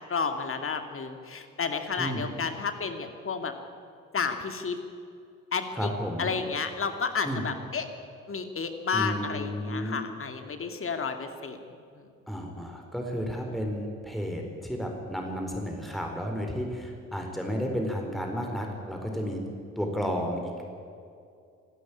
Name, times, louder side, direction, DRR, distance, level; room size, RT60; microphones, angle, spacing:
voice 1, 0.0-3.5 4.1-4.8 5.5-5.9 6.2-7.9 8.3-12.1, left 5 dB, 35° left, 7 dB, 2.4 m, -31 dB
voice 2, 2.0-2.3 5.8-6.3 7.2-7.5 8.9-10.0 12.3-19.4 19.8-20.6, equal, ahead, 2 dB, 4.3 m, -32 dB
26.0 x 13.0 x 8.8 m, 2.4 s
figure-of-eight pair, 45°, 39 cm